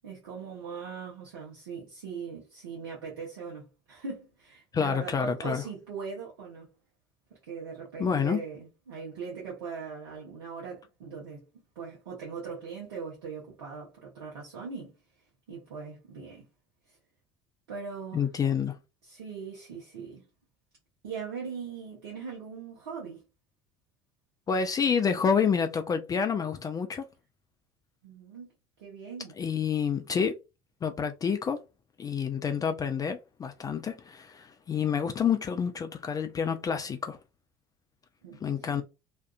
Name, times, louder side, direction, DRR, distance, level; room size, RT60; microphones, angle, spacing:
voice 1, 0.0-6.7 7.4-11.5 11.8-14.9 15.5-16.5 16.9-17.0 17.7-18.3 19.0-20.2 21.0-23.2 28.0-28.5 28.8-29.3 38.2-38.8, right 5 dB, 80° right, 0.9 m, -40 dB
voice 2, 4.7-5.6 8.0-8.4 18.1-18.8 24.5-27.1 29.4-30.3 30.8-31.6 32.0-37.2 38.4-38.8, left 6 dB, 25° left, 0.4 m, -28 dB
2.6 x 2.4 x 2.3 m
hypercardioid pair, 65°, 13 cm